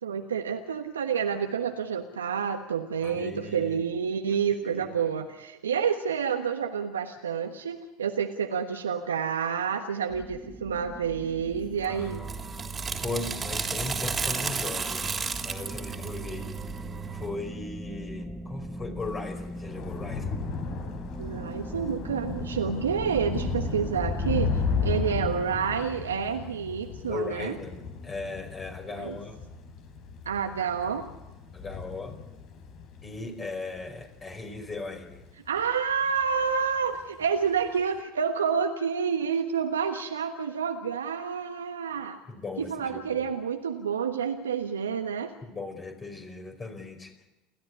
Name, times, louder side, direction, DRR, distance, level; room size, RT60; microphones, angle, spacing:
voice 1, 0.0-12.3 21.2-27.6 28.9-29.2 30.2-31.0 35.5-42.2 42.6-45.3, right 7 dB, 85° right, 5 dB, 1.3 m, -29 dB
voice 2, 3.0-3.8 4.6-5.0 11.8-12.3 13.0-15.1 15.4-16.5 17.1-20.4 27.1-29.4 31.5-32.2 33.0-35.2 42.3-43.3 45.4-47.1, left 3 dB, 25° left, 3 dB, 5.0 m, -38 dB
sound 1, 10.1-25.0, right 1 dB, 5° right, 3.7 m, -40 dB
sound 2, 11.8-17.3, right 5 dB, 25° right, 3.3 m, -33 dB
Thunder / Rain, 19.1-35.7 36.0-36.5 36.8-36.9, left 5 dB, 50° left, 4.5 m, -34 dB
30.0 x 13.5 x 9.7 m, 1.0 s
hypercardioid pair, 75°, 0 cm